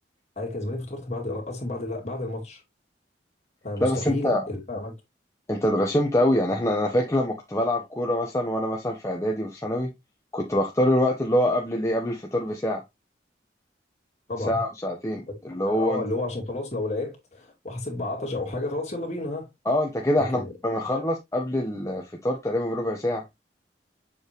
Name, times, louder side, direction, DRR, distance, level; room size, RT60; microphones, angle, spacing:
voice 1, 0.4-2.6 3.6-5.0 14.3-14.6 15.6-19.5 20.2-20.5 20.9-21.0, left 2 dB, 40° left, 2.4 m, -31 dB
voice 2, 3.8-4.4 5.5-9.9 10.3-12.8 14.5-16.0 19.6-23.2, left 1 dB, 15° left, 0.8 m, -25 dB
7.1 x 5.0 x 2.9 m
head